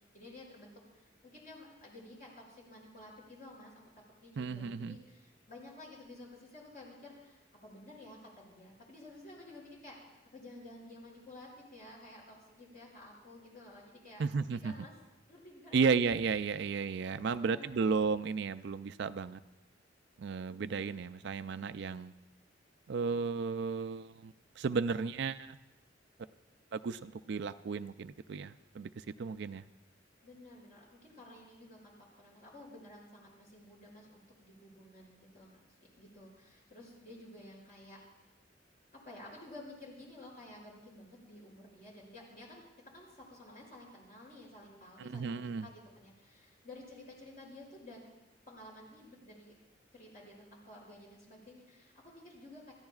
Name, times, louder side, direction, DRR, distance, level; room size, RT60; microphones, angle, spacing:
voice 1, 0.1-3.7 4.2-10.0 10.3-14.3 14.6-15.0 15.3-15.8 17.2-17.7 20.5-21.0 24.7-24.8 30.2-35.6 36.0-38.0 38.9-42.6 42.9-48.1 48.5-49.5 49.9-52.7, left 1 dB, 50° left, -3 dB, 6.0 m, -52 dB
voice 2, 4.4-4.9 14.2-14.7 15.7-19.4 20.2-22.1 22.9-25.6 26.7-29.6 45.0-45.7, right 5 dB, 65° right, 11 dB, 0.4 m, -34 dB
27.0 x 14.5 x 2.4 m, 1.0 s
head